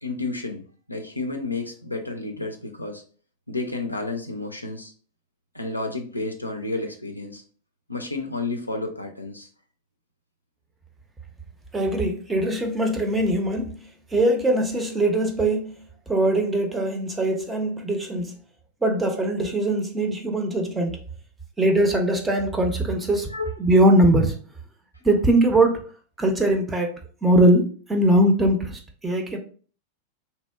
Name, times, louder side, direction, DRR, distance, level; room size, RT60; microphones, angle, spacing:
voice 1, 0.0-3.0 3.5-4.9 5.5-7.4 7.9-9.5 23.3-23.6, left 2 dB, 85° left, 0.4 m, -31 dB
voice 2, 11.7-15.7 16.1-18.3 18.8-21.0 21.6-23.3 23.6-24.4 25.0-25.9 26.2-26.9 27.2-29.4, right 1 dB, 10° right, 0.5 m, -21 dB
2.7 x 2.1 x 2.3 m
figure-of-eight pair, 90°, 0 cm